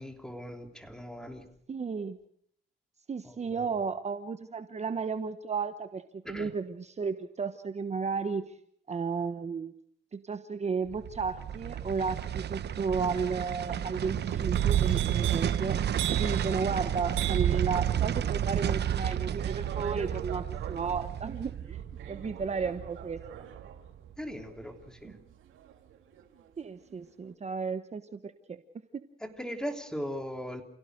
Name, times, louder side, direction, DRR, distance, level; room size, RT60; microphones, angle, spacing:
voice 1, 0.0-1.5 3.2-3.7 6.2-6.5 24.2-25.2 29.2-30.6, equal, 5° left, 5 dB, 3.3 m, -39 dB
voice 2, 1.7-2.2 3.1-8.4 8.9-9.7 10.1-15.8 16.2-21.8 22.1-23.2 25.0-25.2 26.6-28.6, right 5 dB, 35° right, 9 dB, 1.2 m, -33 dB
sound 1, 10.9-24.1 24.4-24.5, right 10 dB, 60° right, 1.1 m, -31 dB
sound 2, 14.5-26.5 26.8-27.3, right 12 dB, 80° right, 2.7 m, -42 dB
29.0 x 17.0 x 6.5 m, 0.67 s
cardioid pair, 90°, 20 cm